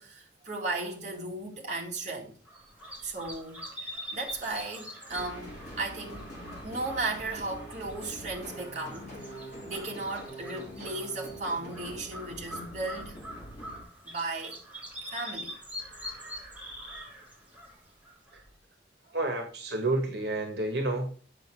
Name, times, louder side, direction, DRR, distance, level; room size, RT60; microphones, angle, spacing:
voice 1, 0.0-2.3 3.0-6.3 6.6-9.4 9.6-13.2 14.0-14.6 15.1-15.5, right 2 dB, 40° right, 2.2 m, -36 dB
sound 1, 2.4-18.5, equal, 5° right, 3.4 m, -44 dB
sound 2, 5.1-13.8, equal, 40° left, 4.9 m, -44 dB
voice 2, 19.1-21.1, right 2 dB, 65° right, 1.7 m, -30 dB
8.2 x 6.6 x 4.7 m
head